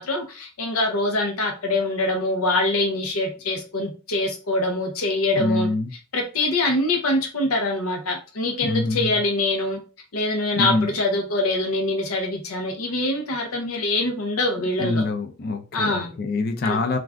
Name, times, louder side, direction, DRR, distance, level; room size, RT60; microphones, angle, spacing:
voice 1, 0.0-5.7 6.1-9.8 10.1-15.1 15.7-16.1 16.6-16.8, left 2 dB, 85° left, 0.7 m, -24 dB
voice 2, 5.4-5.9 8.6-9.2 10.5-10.9 14.8-17.0, left 2 dB, 45° left, 0.4 m, -24 dB
2.4 x 2.4 x 3.3 m
head